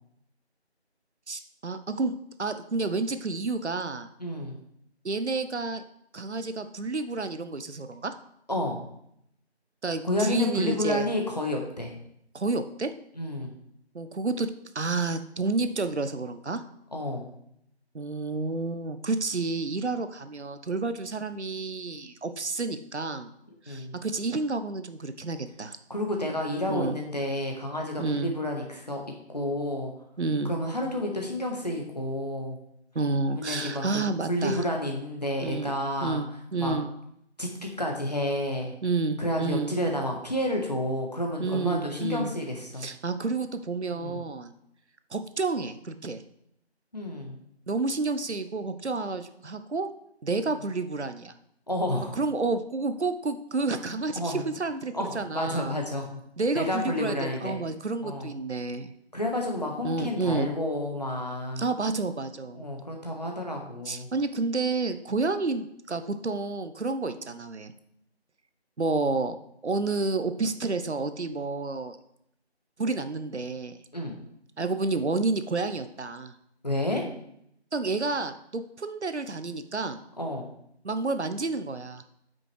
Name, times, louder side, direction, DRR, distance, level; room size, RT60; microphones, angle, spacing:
voice 1, 1.3-2.1 2.4-4.1 5.0-5.8 6.1-8.1 9.8-11.1 12.3-12.9 13.9-14.5 14.7-16.6 17.9-23.3 23.7-25.8 26.7-27.0 28.0-28.3 30.2-30.5 32.9-34.6 35.4-35.8 36.0-36.9 38.8-39.7 41.4-42.3 42.8-44.5 45.1-46.2 47.7-49.9 50.2-51.3 52.1-55.8 56.4-58.9 59.8-60.5 61.6-62.7 63.8-67.7 68.8-69.4 69.6-72.0 72.8-73.8 74.6-76.3 77.7-80.0 80.8-82.0, right 3 dB, 80° right, 10 dB, 0.9 m, -30 dB
voice 2, 4.2-4.6 8.5-8.8 10.0-11.9 13.2-13.5 16.9-17.3 23.7-23.9 25.9-29.0 29.3-29.9 30.4-32.6 33.3-33.8 34.3-36.2 36.6-36.8 37.4-38.7 39.2-42.9 43.9-44.2 46.9-47.4 50.5-50.6 51.7-52.2 54.1-54.4 54.9-56.2 56.5-57.6 58.0-58.3 59.1-61.6 62.5-64.1 73.9-74.1 76.6-77.0 80.2-80.5, left 1 dB, 40° left, 1 dB, 1.4 m, -30 dB
8.8 x 6.1 x 3.3 m, 0.73 s
figure-of-eight pair, 180°, 33 cm